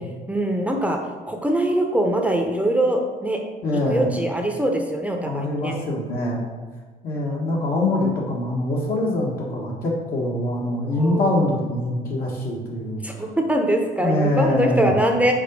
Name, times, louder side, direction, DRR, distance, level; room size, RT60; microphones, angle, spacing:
voice 1, 0.3-1.0 1.3-3.4 3.9-5.8 7.2-7.5 10.9-11.4 13.0-15.3, right 1 dB, 10° right, 2 dB, 0.7 m, -23 dB
voice 2, 3.6-4.1 5.2-6.4 7.0-13.0 14.0-14.9, left 1 dB, 60° left, -4 dB, 1.3 m, -24 dB
5.2 x 3.9 x 5.3 m, 1.4 s
cardioid pair, 110°, 17 cm